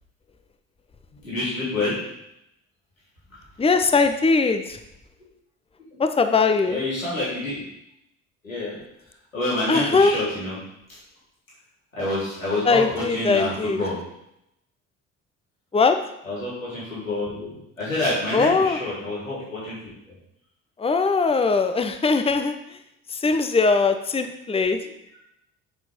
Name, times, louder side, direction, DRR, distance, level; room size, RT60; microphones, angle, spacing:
voice 1, 1.1-2.0 5.9-6.0 6.7-7.6 8.4-8.8 9.3-10.6 10.9-11.0 11.9-14.0 16.2-19.8, left 2 dB, 90° left, -9 dB, 3.7 m, -27 dB
voice 2, 3.6-4.8 6.0-6.8 9.7-10.1 12.7-13.8 15.7-16.0 18.3-18.8 20.8-22.5 23.1-24.8, left 4 dB, 15° left, 7 dB, 0.9 m, -20 dB
7.3 x 7.2 x 5.3 m, 0.81 s
figure-of-eight pair, 50°, 39 cm